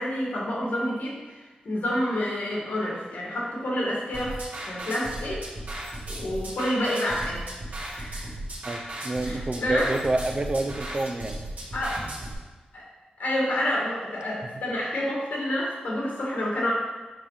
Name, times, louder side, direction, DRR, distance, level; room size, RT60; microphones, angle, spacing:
voice 1, 0.0-5.4 6.2-7.4 7.9-8.3 9.2-9.9 11.7-12.0 12.7-12.8 13.2-16.7, left 1 dB, 85° left, -4 dB, 2.2 m, -28 dB
sound 1, 4.1-12.3, right 1 dB, 65° right, 1.6 m, -36 dB
voice 2, 8.6-11.4, right 2 dB, 35° right, 6 dB, 0.5 m, -28 dB
7.5 x 5.2 x 3.4 m, 1.3 s
wide cardioid pair, 100°, 3 cm